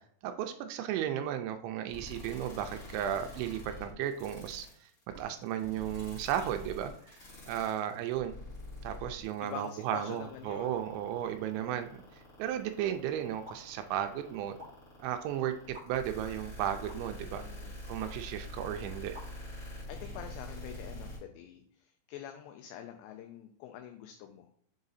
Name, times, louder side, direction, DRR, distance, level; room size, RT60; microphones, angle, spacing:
voice 1, 0.2-4.9 5.2-7.2 7.5-8.3 8.8-12.0 12.4-14.6 15.0-15.5 15.9-17.5 17.9-19.2, right 10 dB, 85° right, 7 dB, 2.7 m, -34 dB
sound 1, 1.9-21.2, left 1 dB, 35° left, 2.1 m, -45 dB
voice 2, 9.4-10.8 11.6-11.8 17.3-17.9 19.9-24.5, left 10 dB, 80° left, 5 dB, 2.7 m, -46 dB
sound 2, 13.4-13.6 14.6-14.7 15.7-15.8 16.9-17.0 18.0-18.2 19.1-19.3, left 1 dB, 20° right, 1.2 m, -47 dB
7.0 x 3.8 x 4.1 m, 0.64 s
omnidirectional pair, 5.5 m